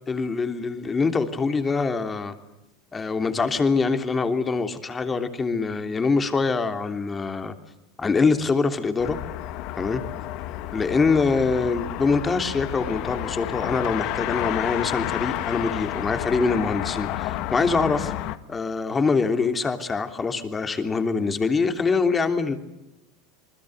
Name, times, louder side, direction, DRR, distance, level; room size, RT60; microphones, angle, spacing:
voice 1, 0.1-2.3 2.9-7.5 8.0-9.2 9.8-10.0 10.7-18.1 18.5-22.6, left 4 dB, 20° left, 8 dB, 3.1 m, -24 dB
sound 1, 9.0-18.4, left 14 dB, 55° left, 1.7 m, -30 dB
28.0 x 21.0 x 7.9 m, 0.92 s
supercardioid pair, 115°, 0 cm